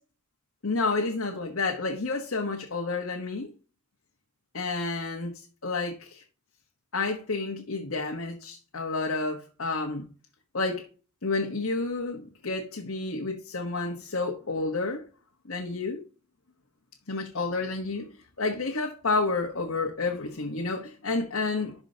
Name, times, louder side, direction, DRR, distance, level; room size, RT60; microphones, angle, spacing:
voice 1, 0.6-3.5 4.5-6.2 6.9-10.1 10.5-10.8 11.2-15.0 15.5-16.0 17.1-18.1 18.4-21.7, left 3 dB, 75° left, 1.3 m, -30 dB
12.0 x 4.9 x 2.9 m
head